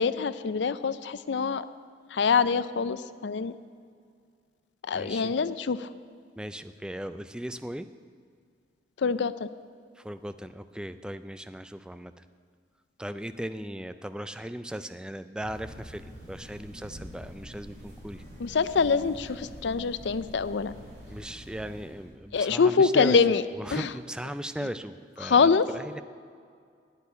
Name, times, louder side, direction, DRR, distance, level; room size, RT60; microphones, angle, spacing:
voice 1, 0.0-1.7 2.1-3.6 4.9-5.9 9.0-9.5 18.4-20.7 22.3-23.4 23.7-23.9 25.2-25.7, left 5 dB, 75° left, 15 dB, 0.5 m, -24 dB
voice 2, 4.9-5.3 6.4-7.9 10.0-12.2 13.0-18.2 21.1-23.3 23.5-26.0, right 1 dB, 5° right, 11 dB, 0.3 m, -37 dB
sound 1, 15.4-22.1, equal, 50° right, 4.0 m, -46 dB
9.0 x 8.3 x 9.5 m, 2.1 s
head